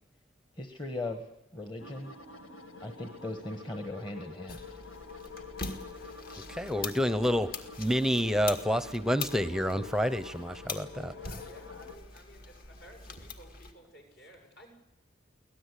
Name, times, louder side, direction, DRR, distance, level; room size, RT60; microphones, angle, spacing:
voice 1, 0.6-1.2 1.5-2.1 2.8-4.6, left 2 dB, 25° left, 5 dB, 1.4 m, -38 dB
sound 1, 1.8-12.0, left 4 dB, 80° left, 1.9 m, -47 dB
sound 2, 4.5-13.7, left 4 dB, 45° left, 2.1 m, -43 dB
voice 2, 6.5-11.1, equal, ahead, 12 dB, 0.8 m, -29 dB
voice 3, 11.1-14.7, equal, 60° left, 2 dB, 6.7 m, -54 dB
24.0 x 18.0 x 8.4 m, 0.91 s
head